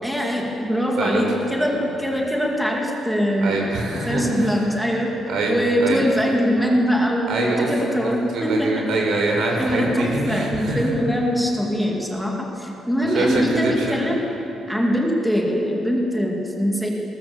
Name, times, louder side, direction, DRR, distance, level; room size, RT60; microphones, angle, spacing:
voice 1, 0.0-3.7 4.1-5.1 5.5-8.8 9.6-14.3 14.7-16.9, equal, ahead, -1 dB, 2.3 m, -22 dB
voice 2, 3.4-4.5 5.3-5.5 5.8-6.0 7.3-7.7 8.0-10.9 13.1-14.0, right 2 dB, 60° right, 0 dB, 5.6 m, -24 dB
21.5 x 19.5 x 7.2 m, 3.0 s
cardioid pair, 170°, 0 cm